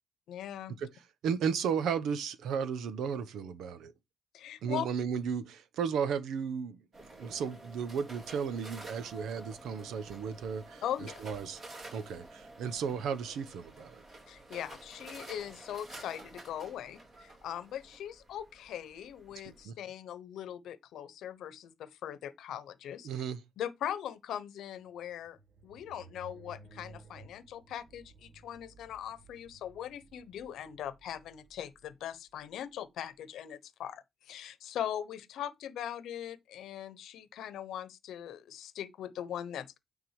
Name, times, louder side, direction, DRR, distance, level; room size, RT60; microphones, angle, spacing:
voice 1, 0.3-0.8 4.3-4.9 10.8-11.2 14.3-23.1 23.6-25.4 25.6-39.8, left 10 dB, 75° left, 1.0 m, -40 dB
voice 2, 1.2-3.9 4.6-6.8 7.2-10.8 11.2-11.6 11.9-14.0 19.6-19.7 23.0-23.4, right 7 dB, 75° right, 1.0 m, -34 dB
sound 1, 6.9-19.6, right 2 dB, 40° right, 3.0 m, -50 dB
sound 2, 24.8-33.1, right 4 dB, 55° right, 1.4 m, -57 dB
9.4 x 3.7 x 4.9 m
cardioid pair, 130°, 0 cm